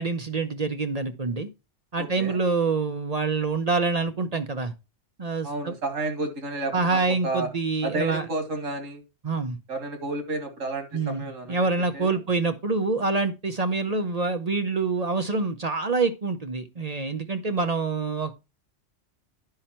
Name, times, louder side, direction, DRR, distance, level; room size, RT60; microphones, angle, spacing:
voice 1, 0.0-1.5 1.9-4.7 5.2-5.7 6.7-8.2 9.2-9.6 10.9-18.3, right 4 dB, 40° right, 8 dB, 0.7 m, -26 dB
voice 2, 2.0-2.4 5.4-7.5 7.8-9.0 9.7-11.7 11.9-12.2, right 2 dB, 90° right, 5 dB, 2.3 m, -31 dB
10.5 x 5.7 x 4.3 m, 0.28 s
omnidirectional pair, 1.3 m